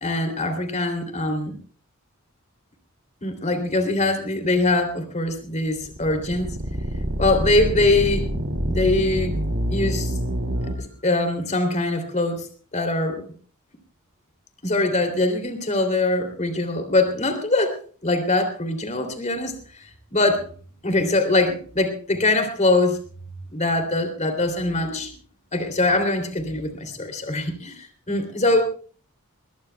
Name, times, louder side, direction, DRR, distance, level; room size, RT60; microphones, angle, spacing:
voice 1, 0.0-1.5 3.2-6.6 7.2-8.3 8.7-9.3 9.7-10.1 10.6-12.5 12.7-13.2 14.6-19.6 20.1-20.5 20.8-23.0 23.5-25.1 25.5-28.6, left 2 dB, 35° left, 7 dB, 3.1 m, -23 dB
sound 1, 5.7-10.7, equal, 70° right, 2.4 m, -26 dB
21.5 x 21.0 x 2.3 m, 0.41 s
head